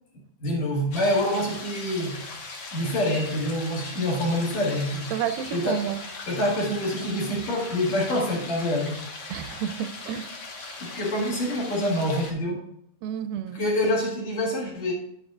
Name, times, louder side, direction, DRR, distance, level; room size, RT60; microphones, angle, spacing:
voice 1, 0.4-2.2 2.7-5.1 5.5-9.1 10.8-12.6 13.5-14.9, left 1 dB, 55° left, -3 dB, 2.8 m, -26 dB
sound 1, 0.9-12.3, left 3 dB, 80° left, 1.0 m, -39 dB
voice 2, 5.1-6.0 9.3-10.3 13.0-13.7, right 9 dB, 80° right, 9 dB, 2.2 m, -30 dB
11.0 x 7.9 x 2.4 m, 0.73 s
omnidirectional pair, 4.3 m